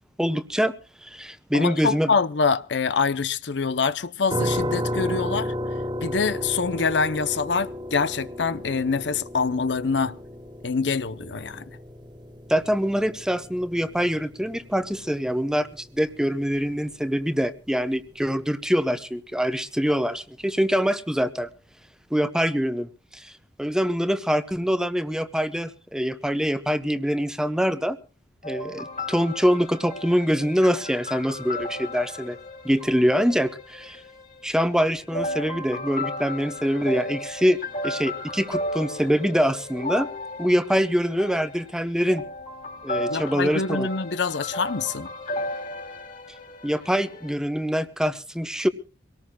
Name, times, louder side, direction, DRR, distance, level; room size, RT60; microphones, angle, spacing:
voice 1, 0.2-0.7 1.0-2.1 12.5-21.5 22.1-23.3 23.6-28.0 28.4-32.4 32.6-34.0 34.4-37.6 37.8-40.1 40.4-42.2 42.8-43.9 46.6-48.7, equal, 5° right, 0.9 m, -24 dB
voice 2, 1.5-5.5 6.0-10.2 10.6-11.7 43.0-45.1, left 5 dB, 75° left, 0.7 m, -25 dB
sound 1, 4.3-17.2, equal, 25° right, 1.5 m, -33 dB
sound 2, 28.4-34.4 35.1-47.3, left 1 dB, 45° left, 3.1 m, -34 dB
24.0 x 18.5 x 2.3 m
head